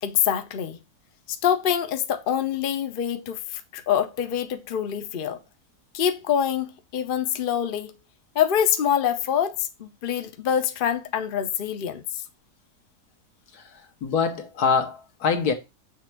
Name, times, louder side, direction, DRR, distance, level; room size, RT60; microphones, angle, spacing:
voice 1, 0.0-0.8 1.4-5.4 5.9-7.9 8.3-12.2, left 9 dB, 50° left, 0.6 m, -25 dB
voice 2, 14.0-15.5, left 5 dB, 70° left, 1.7 m, -24 dB
6.8 x 3.3 x 5.9 m
omnidirectional pair, 1.7 m